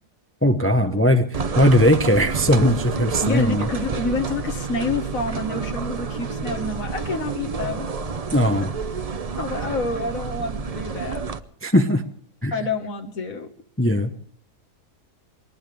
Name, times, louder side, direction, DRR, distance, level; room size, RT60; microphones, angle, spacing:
voice 1, 0.4-3.7 8.3-8.7 11.6-12.0 12.4-12.5 13.8-14.1, equal, 10° left, 6 dB, 0.8 m, -19 dB
sound 1, 1.3-11.4, right 5 dB, 40° right, 0.5 m, -29 dB
voice 2, 3.2-7.9 9.4-11.2 12.5-13.5, left 3 dB, 60° left, 4 dB, 2.1 m, -28 dB
21.5 x 19.0 x 3.5 m, 0.63 s
omnidirectional pair, 1.7 m